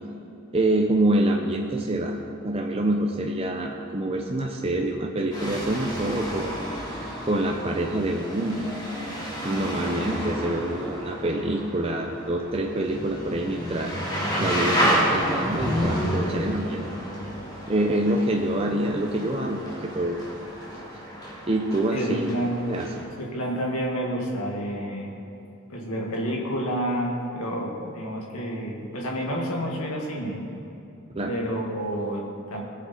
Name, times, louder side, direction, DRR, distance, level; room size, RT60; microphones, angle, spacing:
voice 1, 0.5-2.2 2.4-8.7 9.2-16.8 17.7-20.2 21.5-22.3 22.6-22.9 31.1-31.3, right 1 dB, 25° right, 1 dB, 0.6 m, -26 dB
sound 1, 5.3-23.0, equal, 20° left, 3.0 m, -30 dB
voice 2, 21.9-22.6 23.2-25.1 25.7-30.4 31.3-32.6, equal, 75° left, -2 dB, 2.2 m, -29 dB
19.5 x 7.4 x 4.4 m, 2.7 s
head